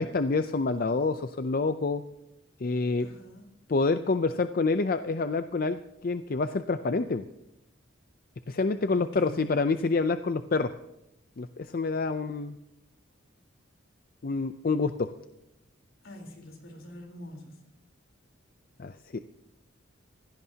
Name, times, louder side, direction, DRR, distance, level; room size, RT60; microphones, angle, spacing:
voice 1, 0.0-2.0 2.6-3.1 3.7-7.2 8.5-10.7 11.4-12.5 14.2-15.1 18.8-19.2, left 3 dB, 45° left, 10 dB, 0.5 m, -27 dB
voice 2, 3.0-3.5 8.9-9.5 16.0-17.6, left 1 dB, 75° left, 2 dB, 3.8 m, -45 dB
23.5 x 16.5 x 2.8 m, 0.87 s
head